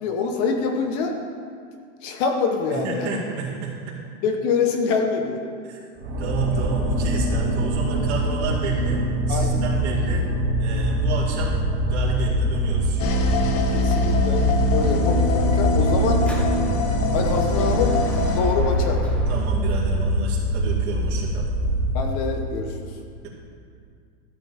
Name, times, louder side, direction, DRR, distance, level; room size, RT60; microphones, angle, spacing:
voice 1, 0.0-1.2 2.0-3.3 4.2-5.4 9.3-9.6 13.7-16.2 17.1-17.9 18.3-19.0 21.9-22.9, left 5 dB, 35° left, 4 dB, 0.8 m, -25 dB
voice 2, 2.7-4.0 5.6-5.8 6.2-9.0 9.3-10.2 10.6-11.6 11.9-13.1 19.3-21.4, right 4 dB, 60° right, -6 dB, 2.3 m, -31 dB
sound 1, 6.0-22.2, equal, 40° right, 2.0 m, -23 dB
sound 2, 13.0-18.4, left 2 dB, 85° left, 1.4 m, -25 dB
Dog / Motorcycle, 14.6-19.6, equal, 5° left, 0.6 m, -37 dB
13.0 x 7.0 x 4.2 m, 2.2 s
supercardioid pair, 155°, 37 cm